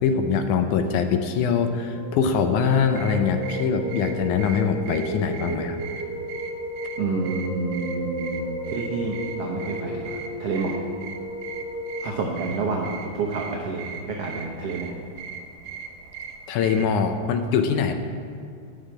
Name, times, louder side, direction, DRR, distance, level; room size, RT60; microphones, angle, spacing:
voice 1, 0.0-5.8 12.0-12.2 16.5-17.9, left 6 dB, 80° left, 7 dB, 2.2 m, -23 dB
sound 1, 1.8-12.0, equal, 25° left, 0.9 m, -34 dB
sound 2, 2.9-17.0, right 6 dB, 85° right, 2.6 m, -40 dB
voice 2, 7.0-10.8 12.0-15.0, right 4 dB, 65° right, -1 dB, 1.8 m, -29 dB
12.5 x 5.8 x 9.0 m, 2.2 s
omnidirectional pair, 3.6 m